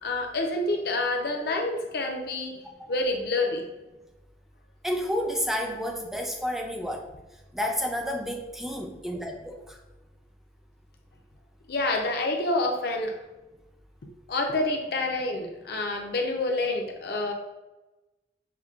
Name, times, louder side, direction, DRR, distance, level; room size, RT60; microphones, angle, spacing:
voice 1, 0.0-2.6 2.9-3.6 11.7-13.1 14.3-17.3, left 2 dB, 60° left, 2 dB, 0.6 m, -28 dB
voice 2, 4.8-7.0 7.5-9.8, equal, ahead, 2 dB, 0.3 m, -30 dB
5.6 x 2.2 x 2.4 m, 1.1 s
head